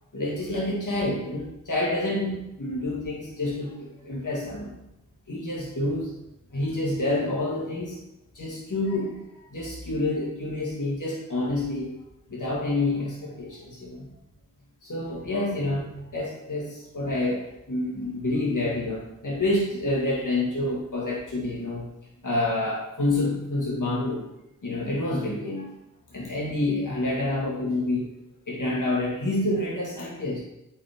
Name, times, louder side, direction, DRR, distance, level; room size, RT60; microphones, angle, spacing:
voice 1, 0.1-4.7 5.3-6.1 6.5-8.0 8.3-9.3 9.5-11.9 12.3-14.1 14.8-21.9 22.2-24.3 24.6-25.7 26.1-28.2 28.5-30.4, left 2 dB, 60° left, -5 dB, 2.0 m, -28 dB
8.3 x 5.7 x 3.6 m, 0.88 s
wide cardioid pair, 65°, 34 cm